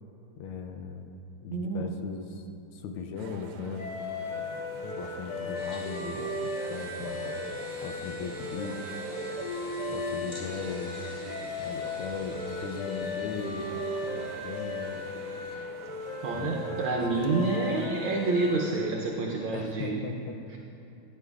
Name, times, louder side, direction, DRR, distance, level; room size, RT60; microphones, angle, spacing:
voice 1, 0.4-2.4 2.7-3.9 4.8-7.3 7.8-9.1 9.9-11.1 11.6-15.0 16.3-16.7 19.5-20.6, left 5 dB, 80° left, 5 dB, 1.5 m, -38 dB
voice 2, 1.5-1.9 16.2-20.0 20.5-20.6, right 3 dB, 70° right, -2 dB, 1.5 m, -28 dB
sound 1, 3.2-17.9, right 6 dB, 85° right, 1.6 m, -45 dB
sound 2, 3.8-18.8, left 2 dB, 55° left, 2.1 m, -36 dB
sound 3, 5.5-15.6, equal, 25° left, 2.0 m, -48 dB
16.0 x 10.0 x 2.4 m, 2.7 s
omnidirectional pair, 2.4 m